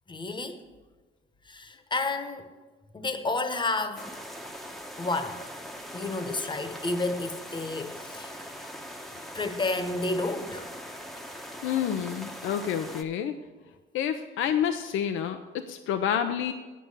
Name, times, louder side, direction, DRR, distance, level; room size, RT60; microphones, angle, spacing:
voice 1, 0.1-0.6 1.5-2.5 2.9-4.1 5.0-5.7 5.9-8.4 9.3-10.7, left 2 dB, 25° left, 8 dB, 1.1 m, -31 dB
sound 1, 4.0-13.0, equal, ahead, 0.9 m, -41 dB
voice 2, 11.6-13.4 13.9-16.5, left 9 dB, 85° left, 7 dB, 0.6 m, -28 dB
8.9 x 7.6 x 6.7 m, 1.3 s
cardioid pair, 90°, 20 cm